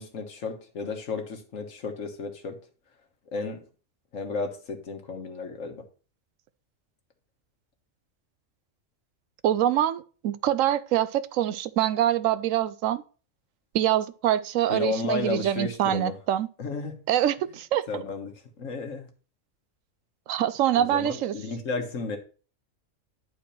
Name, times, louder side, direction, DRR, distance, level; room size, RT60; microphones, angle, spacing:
voice 1, 0.0-2.6 3.3-3.6 4.1-5.8 14.7-16.2 16.6-17.0 17.9-19.1 20.8-22.2, left 4 dB, 90° left, 1.7 m, -33 dB
voice 2, 9.4-13.0 13.7-16.5 17.1-18.0 20.3-21.3, right 11 dB, 90° right, 1.0 m, -25 dB
10.5 x 4.5 x 4.2 m
omnidirectional pair, 1.3 m